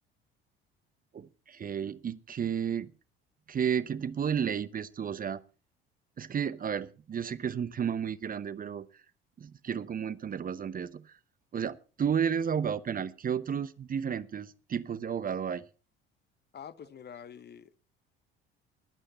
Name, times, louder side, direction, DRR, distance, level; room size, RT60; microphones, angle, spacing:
voice 1, 1.1-2.9 3.5-5.4 6.2-8.9 9.4-11.0 11.5-15.6, right 7 dB, 30° right, 0.9 m, -32 dB
voice 2, 16.5-17.7, left 8 dB, 35° left, 1.0 m, -46 dB
21.0 x 8.9 x 4.2 m
figure-of-eight pair, 60°, 30 cm